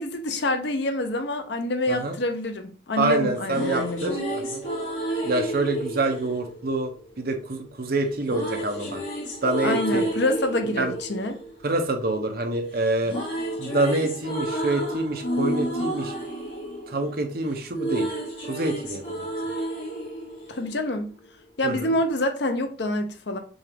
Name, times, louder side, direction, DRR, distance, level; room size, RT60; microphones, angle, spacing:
voice 1, 0.0-4.2 9.6-11.4 20.5-21.1 21.6-23.4, left 1 dB, 55° left, 0.7 m, -27 dB
voice 2, 3.0-4.6 5.2-6.9 7.2-9.0 9.4-10.1 10.6-10.9 11.6-13.1 13.6-16.1 16.9-18.1 18.5-19.0 21.6-21.9, right 2 dB, 50° right, 0.7 m, -26 dB
sound 1, 3.3-7.4 8.2-12.5 12.7-21.3, right 1 dB, 80° left, 1.9 m, -31 dB
6.1 x 2.5 x 3.4 m
head